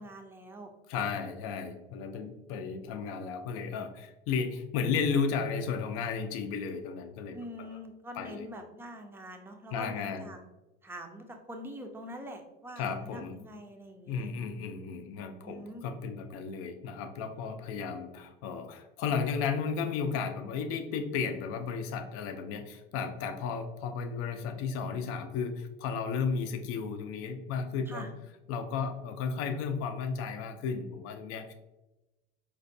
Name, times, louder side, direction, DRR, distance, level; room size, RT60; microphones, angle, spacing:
voice 1, 0.0-0.7 7.3-10.4 10.8-14.3 15.4-15.9 27.9-28.1, equal, 10° right, 4 dB, 0.5 m, -44 dB
voice 2, 0.9-7.8 8.2-8.5 9.7-10.3 12.8-13.4 14.1-28.0 28.5-31.5, left 5 dB, 50° left, 7 dB, 0.5 m, -34 dB
4.5 x 2.1 x 2.6 m, 1.0 s
hypercardioid pair, 85°, 29 cm